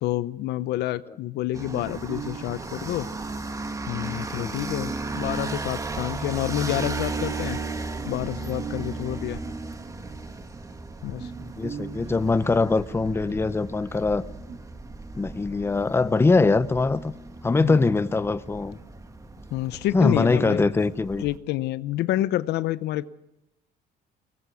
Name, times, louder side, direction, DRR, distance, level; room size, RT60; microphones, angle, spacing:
voice 1, 0.0-3.1 3.9-7.6 8.1-9.4 11.0-11.3 17.6-17.8 19.5-20.7 21.2-23.1, left 14 dB, 80° left, 0.8 m, -28 dB
sound 1, 1.3-14.6, right 6 dB, 40° right, 2.5 m, -43 dB
sound 2, 1.5-21.4, right 3 dB, 20° right, 1.5 m, -35 dB
voice 2, 11.6-14.2 15.1-17.1 17.4-18.8 19.9-21.2, left 3 dB, 15° left, 0.7 m, -22 dB
22.0 x 19.5 x 6.2 m
cardioid pair, 110°, 17 cm